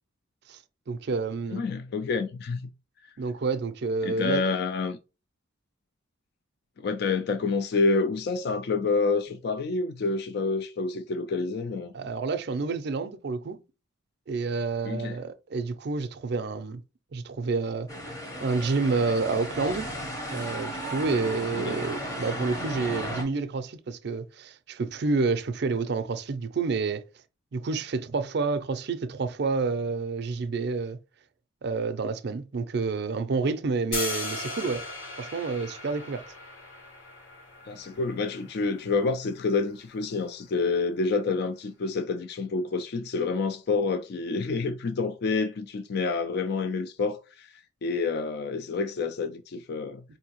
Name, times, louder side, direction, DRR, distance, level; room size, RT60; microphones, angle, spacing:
voice 1, 0.9-1.6 3.2-4.4 11.9-13.6 14.3-16.8 17.1-17.9 18.4-19.9 20.3-27.0 27.5-31.0 31.6-34.8 35.2-36.2, right 4 dB, 55° right, 0.4 m, -29 dB
voice 2, 1.5-2.7 4.0-5.0 6.8-11.9 14.8-15.2 21.6-21.8 37.7-50.0, left 4 dB, 50° left, 0.3 m, -28 dB
sound 1, 17.9-23.2, equal, 15° left, 0.8 m, -35 dB
sound 2, 33.9-40.0, left 3 dB, 75° left, 1.2 m, -38 dB
4.4 x 2.7 x 2.9 m
head